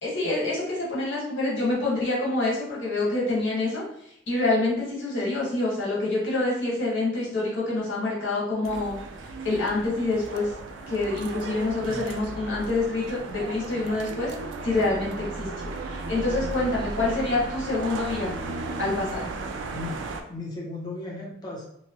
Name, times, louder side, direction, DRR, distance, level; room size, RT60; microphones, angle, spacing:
voice 1, 0.0-9.0 9.4-10.5 10.9-14.3 14.6-15.5 15.8-18.4 18.8-19.3, left 2 dB, 90° left, -5 dB, 1.3 m, -26 dB
sound 1, 8.6-20.2, right 3 dB, 80° right, 0.3 m, -35 dB
voice 2, 20.3-21.6, left 2 dB, 20° left, -3 dB, 0.6 m, -36 dB
2.9 x 2.0 x 2.9 m, 0.72 s
head